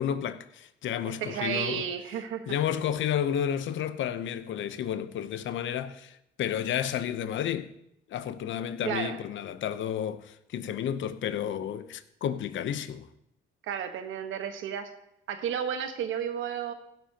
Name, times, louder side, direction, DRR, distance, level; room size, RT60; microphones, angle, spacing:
voice 1, 0.0-1.8 2.5-7.7 8.1-13.1, left 9 dB, 70° left, 0.8 m, -31 dB
voice 2, 1.2-2.5 8.8-9.2 13.6-14.9 15.3-16.7, right 8 dB, 85° right, 1.3 m, -32 dB
16.0 x 13.0 x 2.9 m
cardioid pair, 90°, 20 cm